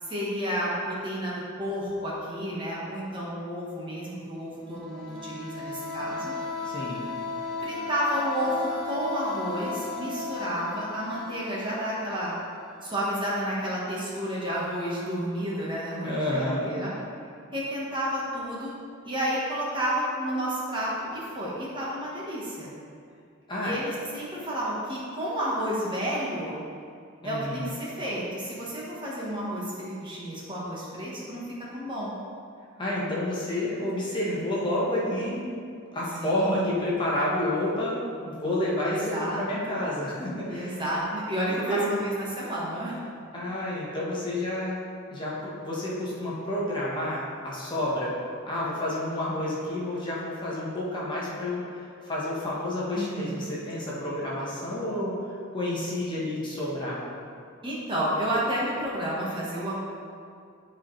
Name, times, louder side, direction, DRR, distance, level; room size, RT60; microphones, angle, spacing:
voice 1, 0.0-6.3 7.6-12.3 12.8-16.9 17.5-18.7 19.0-22.7 23.6-26.6 27.2-31.4 31.7-32.1 36.2-36.7 38.8-39.4 39.7-39.8 40.5-43.0 52.9-53.4 57.6-59.7, equal, 25° right, -6 dB, 1.2 m, -31 dB
sound 1, 4.6-13.2, left 4 dB, 50° right, 1.1 m, -36 dB
voice 2, 6.6-7.0 16.0-16.7 23.5-23.8 27.2-27.7 32.8-35.4 35.9-40.8 41.5-42.0 43.3-44.8 45.1-48.1 48.4-57.0, left 1 dB, 20° left, -7 dB, 1.2 m, -30 dB
10.5 x 4.4 x 3.2 m, 2.3 s
head